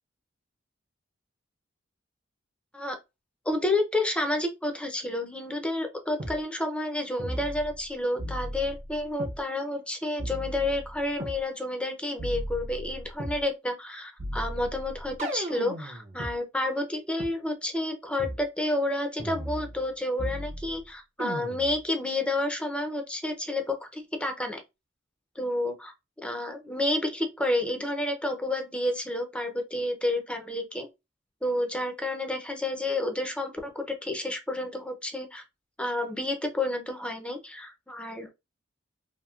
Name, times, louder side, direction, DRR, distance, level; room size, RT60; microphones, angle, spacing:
voice 1, 3.5-24.6 25.4-25.9 26.2-30.9 31.4-35.4 35.8-38.3, left 1 dB, 5° left, 0.5 m, -30 dB
sound 1, 6.2-6.4 7.2-7.9 8.2-9.4 10.2-11.4 12.2-13.4 14.2-16.3 17.2-17.3 18.2-18.4 19.2-19.9 20.2-20.8 21.2-21.8, equal, 35° right, 0.6 m, -36 dB
2.9 x 2.6 x 2.3 m
head